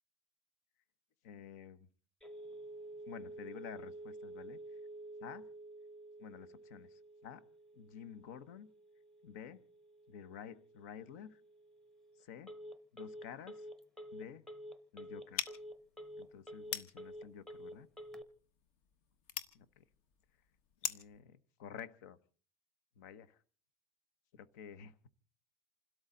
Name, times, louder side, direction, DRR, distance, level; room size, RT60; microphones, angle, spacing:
voice 1, 1.2-1.9 3.1-4.6 5.2-5.4 6.2-7.4 7.7-8.7 9.2-9.6 10.1-11.4 12.2-12.5 12.9-13.7 14.1-14.4 14.9-15.5 16.2-17.9 19.5-19.8 20.8-22.2 23.0-23.4 24.3-25.1, left 8 dB, 80° left, 15 dB, 1.2 m, -51 dB
Telephone, 2.2-18.2, right 1 dB, 5° left, 0.8 m, -50 dB
sound 1, 15.3-21.2, left 8 dB, 60° left, 1.3 m, -44 dB
28.5 x 13.0 x 3.9 m, 0.42 s
cardioid pair, 175°, 9 cm